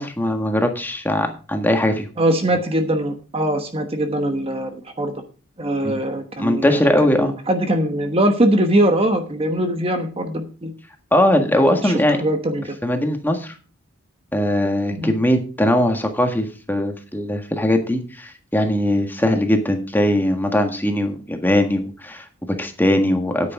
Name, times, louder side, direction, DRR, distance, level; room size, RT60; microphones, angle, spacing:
voice 1, 0.0-2.1 5.8-6.0 6.4-7.3 11.1-12.2 12.8-13.5 14.3-23.5, left 1 dB, 10° left, 5 dB, 1.6 m, -20 dB
voice 2, 2.2-5.2 5.6-10.7 11.7-11.9 12.2-12.8 14.9-15.1, right 1 dB, 30° right, 6 dB, 1.2 m, -21 dB
9.8 x 9.5 x 4.8 m, 0.36 s
head